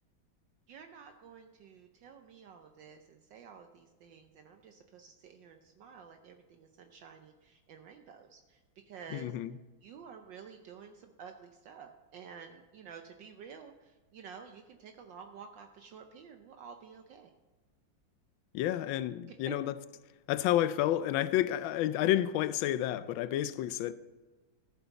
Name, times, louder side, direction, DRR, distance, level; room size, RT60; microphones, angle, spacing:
voice 1, 0.7-8.6 8.9-9.3 9.8-17.3 19.3-19.6, right 6 dB, 70° right, 1.3 m, -51 dB
voice 2, 9.1-9.5 18.5-19.7 20.3-23.9, left 13 dB, 75° left, 1.3 m, -30 dB
15.0 x 7.0 x 4.1 m
omnidirectional pair, 2.2 m